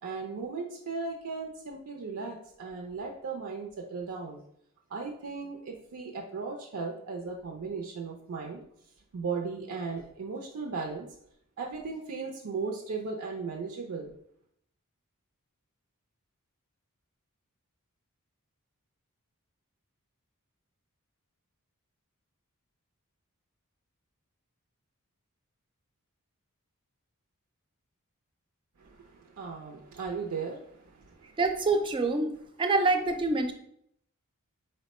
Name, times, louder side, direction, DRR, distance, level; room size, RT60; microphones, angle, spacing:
voice 1, 0.0-4.4 4.9-8.6 9.1-11.1 11.6-14.1 28.8-31.4, right 4 dB, 80° right, 0 dB, 0.5 m, -37 dB
voice 2, 31.4-33.5, right 3 dB, 20° right, 7 dB, 0.4 m, -26 dB
4.2 x 2.1 x 4.1 m, 0.70 s
head